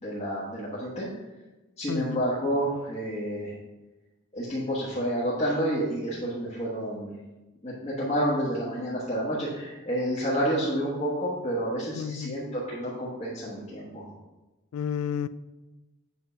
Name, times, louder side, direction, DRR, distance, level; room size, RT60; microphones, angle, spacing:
voice 1, 0.0-1.1 1.8-3.5 4.3-7.1 7.6-14.1, equal, 30° left, -8 dB, 1.3 m, -29 dB
voice 2, 1.9-2.2 12.0-12.4 14.7-15.3, left 7 dB, 90° left, 16 dB, 0.3 m, -31 dB
7.7 x 3.8 x 5.6 m, 1.1 s
head